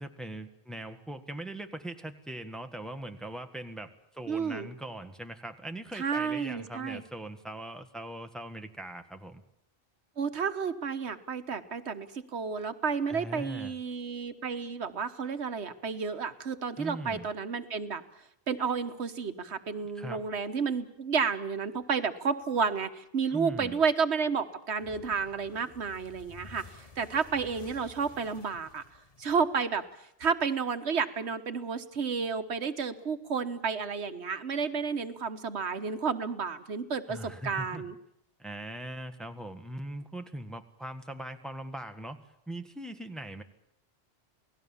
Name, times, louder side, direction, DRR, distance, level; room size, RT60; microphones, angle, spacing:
voice 1, 0.0-9.4 13.1-13.7 16.8-17.3 19.8-20.2 23.3-23.8 37.1-37.8 38.4-42.2 42.5-43.4, right 1 dB, ahead, 6 dB, 1.5 m, -40 dB
voice 2, 4.3-4.7 5.9-7.0 10.2-18.0 18.5-28.8 29.2-37.9, right 5 dB, 90° right, 9 dB, 1.5 m, -31 dB
sound 1, 24.8-29.9, left 4 dB, 35° left, 1.3 m, -52 dB
28.0 x 18.5 x 7.2 m, 0.75 s
omnidirectional pair, 1.1 m